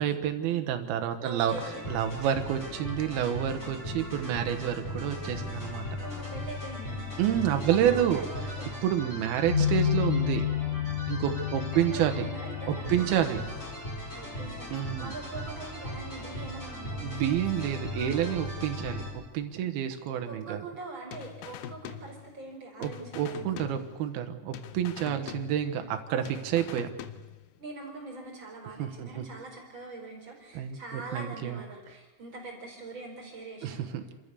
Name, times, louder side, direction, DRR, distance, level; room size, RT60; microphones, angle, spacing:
voice 1, 0.0-1.5 1.9-5.8 7.2-8.2 8.8-10.5 11.1-12.3 12.7-13.4 14.7-15.1 17.0-20.6 22.8-26.9 28.8-29.2 30.5-31.6 33.6-34.1, right 10 dB, 80° right, 6 dB, 3.0 m, -29 dB
voice 2, 1.2-1.8 6.0-7.2 7.5-8.9 11.2-13.1 14.1-17.2 20.3-23.8 27.6-33.9, right 2 dB, 30° right, 0 dB, 4.6 m, -43 dB
sound 1, 1.5-19.1, left 2 dB, 20° left, 4.7 m, -38 dB
sound 2, 9.5-13.7, left 10 dB, 50° left, 3.3 m, -30 dB
sound 3, 21.1-22.6 22.8-24.3 24.5-26.0 26.3-27.6, left 10 dB, 75° left, 2.1 m, -43 dB
29.0 x 13.5 x 6.8 m, 1.3 s
omnidirectional pair, 4.3 m